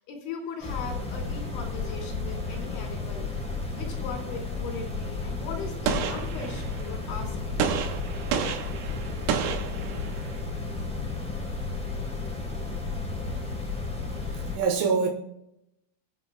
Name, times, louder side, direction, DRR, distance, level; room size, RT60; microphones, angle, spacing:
voice 1, 0.0-7.9 10.0-10.2 12.3-12.5, left 4 dB, 70° left, 1 dB, 4.9 m, -39 dB
sound 1, 0.6-14.6, left 3 dB, ahead, 2.4 m, -33 dB
Gunshot gunfire, 5.9-6.9 7.6-10.4, right 7 dB, 70° right, 2.8 m, -30 dB
voice 2, 14.3-15.1, right 5 dB, 90° right, 2 dB, 3.8 m, -25 dB
23.0 x 9.0 x 2.3 m, 0.81 s
omnidirectional pair, 5.5 m